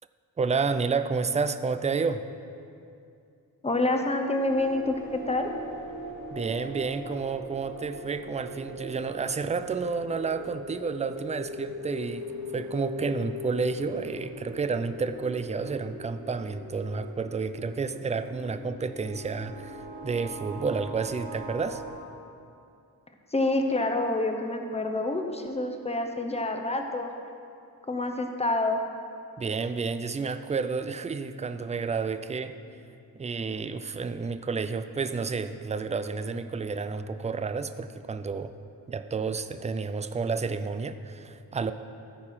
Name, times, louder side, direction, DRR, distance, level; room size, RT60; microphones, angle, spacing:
voice 1, 0.4-2.2 6.3-12.3 12.5-19.8 20.0-21.8 29.4-32.5 33.2-38.5 38.9-41.7, right 4 dB, 20° right, 10 dB, 0.4 m, -30 dB
voice 2, 3.6-5.5 23.3-27.1 27.9-28.8, left 2 dB, 15° left, 4 dB, 0.8 m, -27 dB
sound 1, 4.4-21.9, equal, 70° right, 2.6 m, -40 dB
14.0 x 4.7 x 5.6 m, 2.5 s
wide cardioid pair, 85°, 37 cm